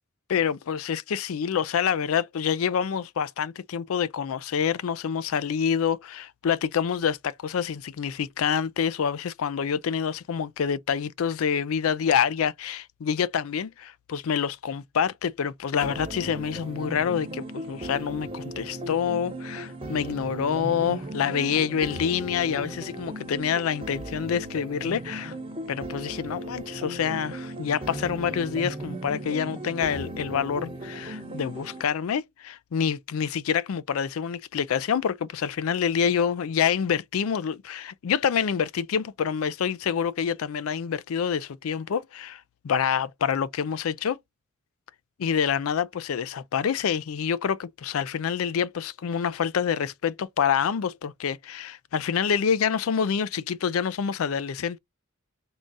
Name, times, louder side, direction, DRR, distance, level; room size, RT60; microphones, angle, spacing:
voice 1, 0.3-25.3 25.7-44.2 45.2-54.8, left 7 dB, 85° left, 0.4 m, -27 dB
sound 1, 15.8-31.8, right 1 dB, 25° right, 1.2 m, -37 dB
3.7 x 2.3 x 3.8 m
head